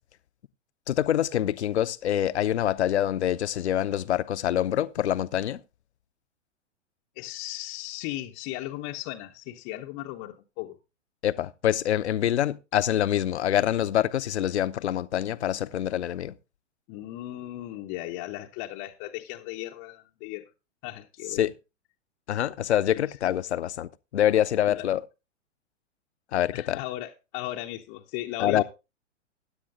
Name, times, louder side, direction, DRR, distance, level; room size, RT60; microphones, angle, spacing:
voice 1, 0.9-5.6 11.2-16.3 21.4-21.5 22.3-25.0 26.3-26.8 28.4-28.6, left 11 dB, 60° left, 0.7 m, -25 dB
voice 2, 7.2-10.8 16.9-20.5 20.8-21.4 22.9-23.1 24.7-24.8 26.5-28.6, left 16 dB, 30° left, 0.7 m, -36 dB
16.0 x 10.0 x 2.5 m
figure-of-eight pair, 110°, 37 cm